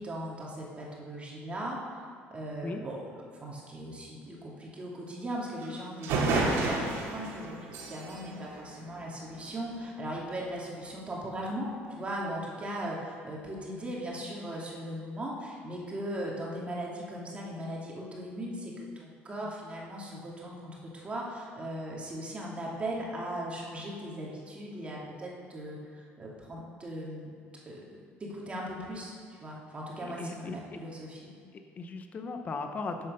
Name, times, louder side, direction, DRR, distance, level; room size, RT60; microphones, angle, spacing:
voice 1, 0.0-2.0 2.3-3.0 3.4-27.3 27.6-27.8 28.2-31.3, right 1 dB, 25° right, -4 dB, 2.7 m, -38 dB
sound 1, 5.6-5.7 6.0-9.5, right 3 dB, 75° right, 2.6 m, -31 dB
voice 2, 30.0-30.8 31.5-33.1, left 3 dB, 35° left, 6 dB, 0.9 m, -38 dB
12.5 x 7.8 x 5.6 m, 2.3 s
cardioid pair, 115°, 5 cm